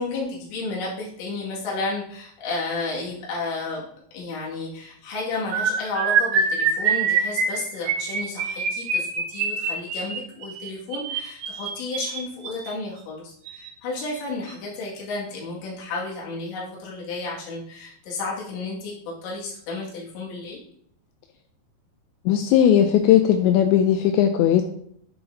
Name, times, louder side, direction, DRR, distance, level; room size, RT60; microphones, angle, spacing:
voice 1, 0.0-3.9 4.1-18.9 19.2-20.6, left 3 dB, 70° left, -5 dB, 4.3 m, -32 dB
sound 1, 5.5-12.7 13.5-13.7 14.0-14.2 14.5-14.7, right 5 dB, 70° right, 2.7 m, -25 dB
voice 2, 22.3-24.6, left 10 dB, 85° left, 6 dB, 2.6 m, -18 dB
11.0 x 5.7 x 2.8 m, 0.66 s
omnidirectional pair, 5.6 m